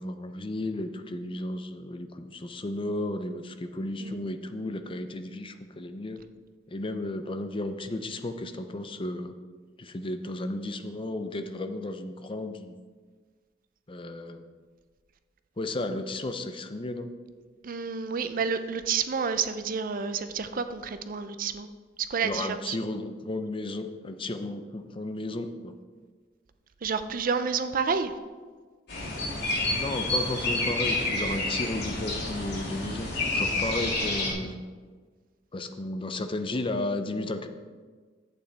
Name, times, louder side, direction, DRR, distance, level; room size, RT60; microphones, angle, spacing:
voice 1, 0.0-6.2 6.7-9.3 9.8-12.7 13.9-14.4 15.6-17.1 22.2-25.7 29.6-34.6 35.5-37.5, left 2 dB, 30° left, 8 dB, 0.6 m, -34 dB
voice 2, 17.6-21.7 22.0-22.8 26.8-28.1, right 6 dB, 50° right, 10 dB, 0.5 m, -29 dB
sound 1, 28.9-34.3, left 2 dB, 65° left, 3.2 m, -29 dB
11.5 x 8.7 x 3.4 m, 1.5 s
head